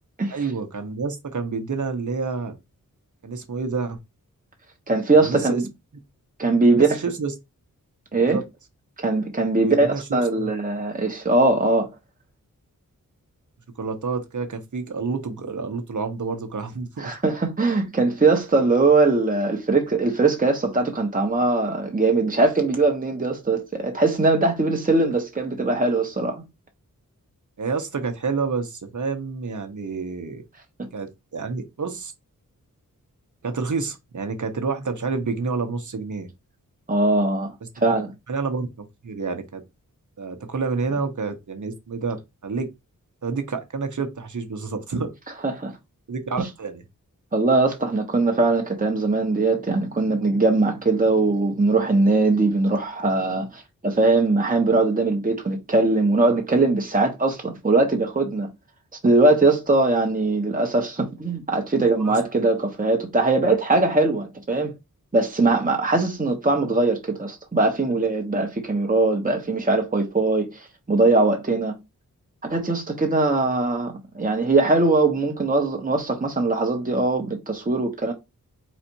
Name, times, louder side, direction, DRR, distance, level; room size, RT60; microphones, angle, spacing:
voice 1, 0.3-2.5 3.2-4.0 5.1-5.6 6.7-7.3 8.1-8.4 9.6-10.0 10.4-10.5 13.8-17.1 27.6-30.4 30.9-32.1 33.4-36.3 38.3-39.6 40.2-42.7 43.2-45.1 46.1-46.8 62.0-62.2, right 4 dB, 55° right, 1.2 m, -29 dB
voice 2, 4.9-5.7 6.4-7.0 8.1-8.4 9.0-11.9 17.0-26.4 36.9-37.5 37.8-38.1 45.4-45.7 47.3-58.5 59.0-64.7 65.1-71.8 72.4-78.1, right 3 dB, 25° right, 1.3 m, -21 dB
4.2 x 2.6 x 4.6 m
wide cardioid pair, 60°, 35 cm